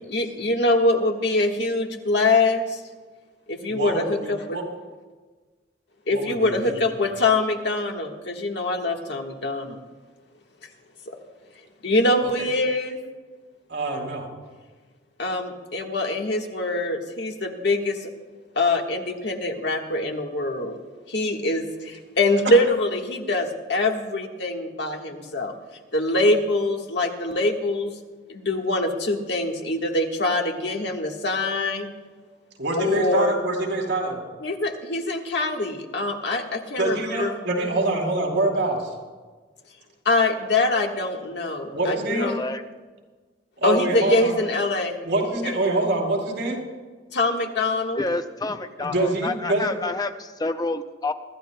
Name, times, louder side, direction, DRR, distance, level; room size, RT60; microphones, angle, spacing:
voice 1, 0.1-2.8 3.5-4.6 6.1-9.8 11.1-11.2 11.8-13.0 15.2-18.1 18.5-20.8 21.1-25.5 25.9-27.9 28.3-31.9 32.8-33.3 34.4-37.3 40.0-42.4 43.6-45.0 45.4-45.5 47.1-48.0, left 2 dB, 65° left, 2 dB, 1.5 m, -24 dB
voice 2, 3.7-4.6 6.1-6.8 12.4-12.5 13.7-14.3 32.6-34.2 36.8-38.9 41.7-42.4 43.6-44.4 45.0-46.6 48.8-49.7, right 2 dB, 75° right, -1 dB, 3.7 m, -25 dB
voice 3, 42.2-42.6 48.0-51.1, left 2 dB, 20° left, 8 dB, 0.5 m, -28 dB
24.5 x 13.0 x 2.3 m, 1.4 s
head